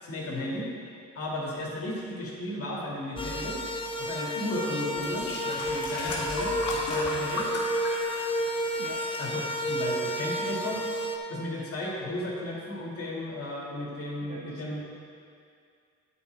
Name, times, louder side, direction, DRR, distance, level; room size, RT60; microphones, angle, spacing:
voice 1, 0.0-0.7 1.1-3.6 4.0-7.5 9.2-10.8 11.3-14.8, left 1 dB, 50° left, -4 dB, 2.3 m, -34 dB
sound 1, 3.2-11.2, equal, 20° left, 0.7 m, -31 dB
sound 2, 4.3-4.5 5.0-8.5 8.7-9.2 9.9-10.0, left 2 dB, 75° left, 2.1 m, -35 dB
voice 2, 14.2-14.8, right 3 dB, 65° right, 1 dB, 1.3 m, -43 dB
10.5 x 5.3 x 4.5 m, 2.3 s
cardioid pair, 90°, 30 cm